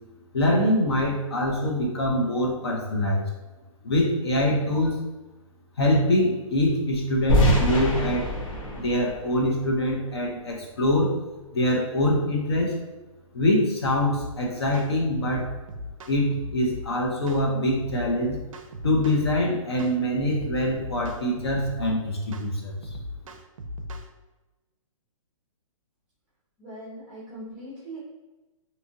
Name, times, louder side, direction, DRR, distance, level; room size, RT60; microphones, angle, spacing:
voice 1, 0.3-3.3 3.8-5.0 5.8-8.3 8.7-11.1 11.5-12.7 13.3-15.5 16.1-18.4 18.8-22.7, left 1 dB, 50° left, 0 dB, 0.5 m, -24 dB
sound 1, 7.3-10.3, equal, 70° left, 0.8 m, -25 dB
sound 2, 14.1-14.3 14.7-14.9 15.2-16.8 17.3-17.4 17.8-19.4 19.8-20.0 20.3-21.9 22.3-22.5 22.8-24.1, left 1 dB, 70° right, 0.4 m, -37 dB
voice 2, 26.6-28.0, right 1 dB, 5° right, -9 dB, 0.6 m, -40 dB
2.7 x 2.5 x 2.7 m, 1.1 s
hypercardioid pair, 180°, 18 cm